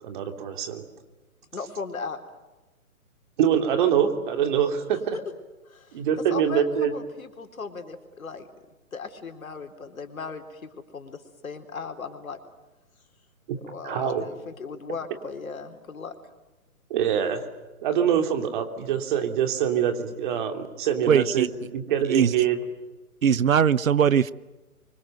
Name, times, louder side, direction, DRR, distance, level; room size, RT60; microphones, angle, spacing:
voice 1, 0.0-0.9 3.4-5.2 5.9-6.9 13.5-13.6 13.8-14.3 16.9-17.4 17.8-21.5 21.7-22.6, right 9 dB, 35° right, 7 dB, 3.2 m, -24 dB
voice 2, 1.5-2.2 5.1-5.2 5.7-6.0 6.3-6.6 6.9-8.5 8.9-12.4 13.6-16.1, left 5 dB, 70° left, 6 dB, 4.1 m, -37 dB
voice 3, 21.1-21.5 22.1-22.3 23.2-24.3, right 7 dB, 70° right, 20 dB, 1.0 m, -20 dB
28.5 x 25.0 x 7.9 m, 1.1 s
hypercardioid pair, 145°, 42 cm